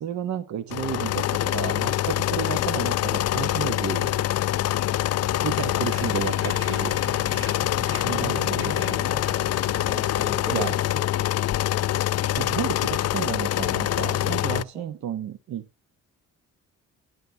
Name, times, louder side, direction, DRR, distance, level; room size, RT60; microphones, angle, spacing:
voice 1, 0.0-4.2 5.4-7.0 8.0-9.0 10.5-10.8 12.3-15.6, right 9 dB, 65° right, 1.1 m, -32 dB
sound 1, 0.7-14.6, left 13 dB, 55° left, 0.5 m, -25 dB
sound 2, 5.5-10.5, right 6 dB, 45° right, 1.5 m, -42 dB
voice 2, 7.9-11.1 14.7-15.0, left 1 dB, ahead, 1.2 m, -39 dB
11.0 x 10.5 x 2.8 m
cardioid pair, 90°, 30 cm